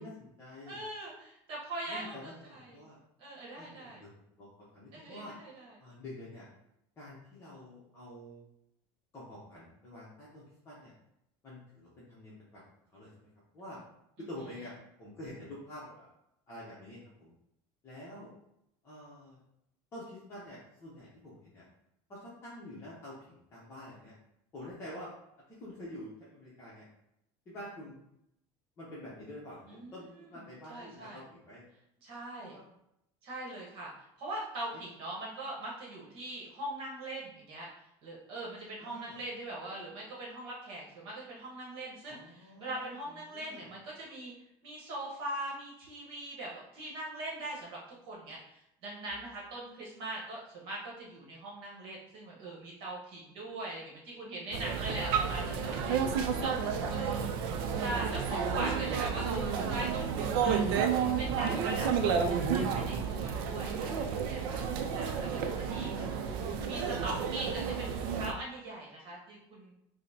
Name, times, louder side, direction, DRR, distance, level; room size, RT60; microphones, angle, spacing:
voice 1, 0.0-0.8 1.9-3.0 3.6-4.1 4.4-5.3 5.8-6.5 7.0-8.4 9.1-10.9 11.4-12.6 12.9-13.3 13.5-13.8 14.3-16.1 16.5-17.3 17.8-18.3 18.8-19.4 19.9-21.6 22.1-24.2 24.5-25.1 25.5-26.9 27.5-28.1 28.8-31.7 32.4-32.6 38.8-39.1 42.1-42.9 43.3-43.7 56.3-57.5 65.4-66.6, left 1 dB, 25° left, -7 dB, 0.7 m, -47 dB
voice 2, 0.7-2.8 3.2-4.0 4.9-5.8 14.2-14.3 29.7-30.4 30.7-31.2 32.0-32.6 33.2-33.9 34.2-37.7 38.0-44.3 44.6-47.8 48.0-56.5 56.9-57.3 57.8-64.6 64.9-65.9 66.7-69.7, right 2 dB, 50° right, -4 dB, 1.0 m, -41 dB
sound 1, 54.5-68.3, right 6 dB, 85° right, 0.4 m, -31 dB
5.0 x 2.1 x 2.7 m, 0.80 s
cardioid pair, 165°, 12 cm